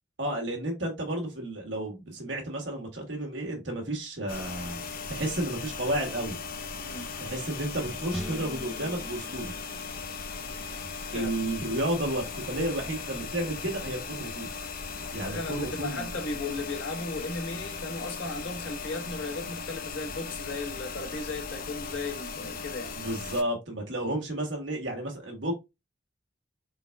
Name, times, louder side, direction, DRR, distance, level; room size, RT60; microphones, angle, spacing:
voice 1, 0.2-4.8 5.1-6.4 7.2-9.5 11.1-14.5 15.1-16.1 22.9-25.5, right 1 dB, 75° right, 1.4 m, -32 dB
sound 1, 4.3-23.4, left 5 dB, 50° left, 0.6 m, -38 dB
sound 2, 8.1-10.5, equal, ahead, 0.8 m, -41 dB
voice 2, 15.3-23.0, left 3 dB, 85° left, 1.2 m, -36 dB
4.3 x 3.9 x 2.2 m
head